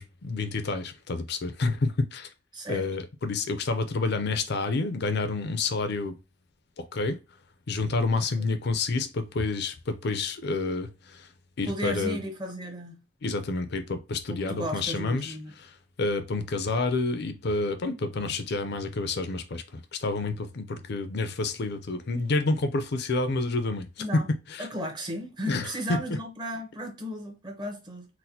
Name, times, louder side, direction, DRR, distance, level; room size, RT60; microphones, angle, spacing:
voice 1, 0.0-2.3 2.7-6.2 6.8-7.2 7.7-11.3 11.6-12.2 13.2-23.9 24.1-24.2 24.5-24.7 25.5-26.2, left 3 dB, 55° left, 0.5 m, -29 dB
voice 2, 2.5-2.9 8.2-8.5 11.6-13.0 14.3-15.5 24.0-24.3 24.6-28.1, equal, 20° right, 0.7 m, -35 dB
4.0 x 2.2 x 2.7 m
head